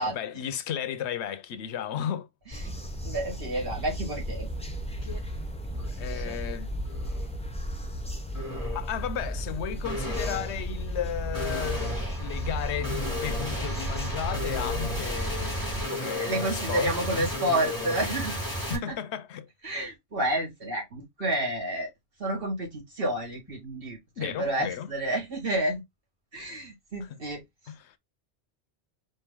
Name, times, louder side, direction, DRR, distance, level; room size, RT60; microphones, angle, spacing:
voice 1, 0.0-2.3 6.0-6.7 8.7-17.3 18.7-19.5 24.2-24.9 27.0-27.2 27.7-28.0, left 9 dB, 85° left, 0.9 m, -34 dB
sound 1, 2.5-15.8, equal, 5° left, 0.6 m, -34 dB
voice 2, 3.0-4.5 15.2-15.4 15.7-18.4 18.7-19.0 19.6-21.9 22.2-25.8 26.3-27.4, right 1 dB, 60° right, 2.2 m, -30 dB
sound 2, 5.0-5.2 5.6-6.3 6.8-7.3 8.3-9.0 9.8-18.8, left 1 dB, 20° right, 2.3 m, -34 dB
4.5 x 2.6 x 3.6 m
omnidirectional pair, 1.1 m